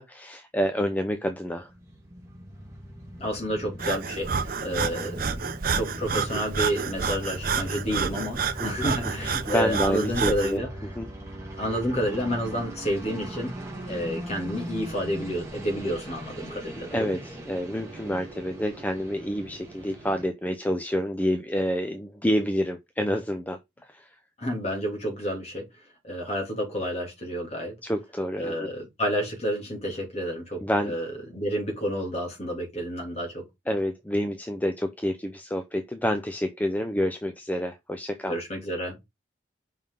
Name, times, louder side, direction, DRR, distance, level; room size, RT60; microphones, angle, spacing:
voice 1, 0.0-1.7 8.6-10.6 11.0-11.1 16.9-24.2 27.8-28.7 30.6-30.9 33.7-38.3, equal, 10° left, 0.5 m, -28 dB
sound 1, 1.4-20.3, right 1 dB, 15° right, 1.9 m, -39 dB
voice 2, 3.2-5.3 5.7-10.7 11.6-13.5 13.9-17.2 24.4-25.6 26.0-27.7 28.3-31.1 31.3-33.4 38.3-39.0, equal, 35° left, 2.7 m, -30 dB
Breathing, 3.8-10.6, right 5 dB, 50° right, 0.6 m, -29 dB
5.5 x 5.5 x 3.8 m
head